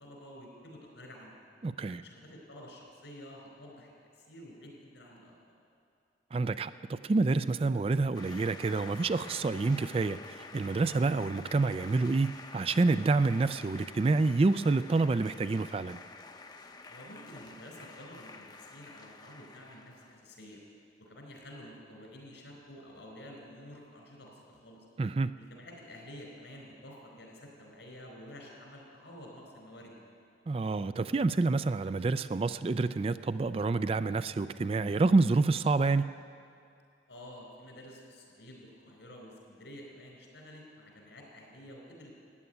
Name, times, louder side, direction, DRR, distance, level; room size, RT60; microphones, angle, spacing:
voice 1, 0.0-1.5 2.0-5.3 16.9-20.6 21.0-24.9 25.4-30.0 37.1-42.2, left 1 dB, 85° left, 1 dB, 4.4 m, -50 dB
voice 2, 1.6-2.0 6.3-16.0 25.0-25.3 30.5-36.1, right 3 dB, 30° right, 13 dB, 0.3 m, -28 dB
sound 1, 8.1-20.2, left 3 dB, 25° left, 0.7 m, -49 dB
15.0 x 9.7 x 9.3 m, 2.5 s
head